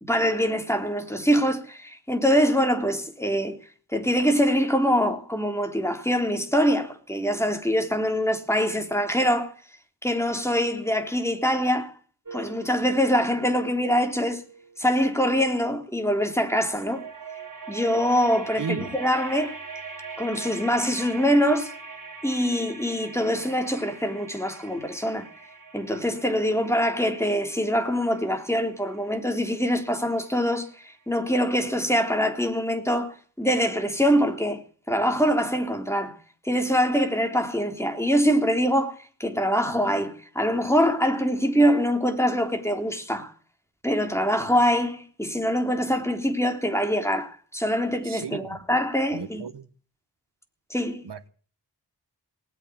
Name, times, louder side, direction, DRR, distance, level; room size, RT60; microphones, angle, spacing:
voice 1, 0.0-3.6 3.9-9.5 10.0-11.9 12.3-14.4 14.8-17.0 17.7-19.6 20.2-21.7 22.2-25.3 25.7-34.6 34.9-36.2 36.4-43.3 43.8-49.5 50.7-51.0, equal, 5° left, 3.6 m, -24 dB
sound 1, 12.3-15.5 16.3-31.2, right 5 dB, 50° right, 3.4 m, -43 dB
voice 2, 18.6-19.0 48.0-48.6 49.1-49.7 51.0-51.3, right 6 dB, 80° right, 1.3 m, -34 dB
19.5 x 8.4 x 8.6 m
wide cardioid pair, 55°, 41 cm